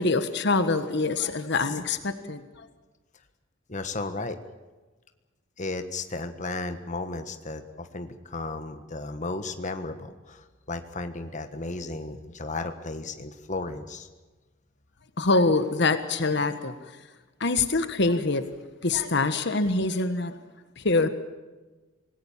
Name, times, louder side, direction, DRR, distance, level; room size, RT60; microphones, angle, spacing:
voice 1, 0.0-2.4 15.2-16.7 17.4-18.4 18.8-20.4 20.8-21.1, left 3 dB, 60° left, 10 dB, 1.5 m, -24 dB
voice 2, 3.7-4.4 5.6-14.1, left 3 dB, 40° left, 8 dB, 1.5 m, -34 dB
26.0 x 19.5 x 7.4 m, 1.2 s
head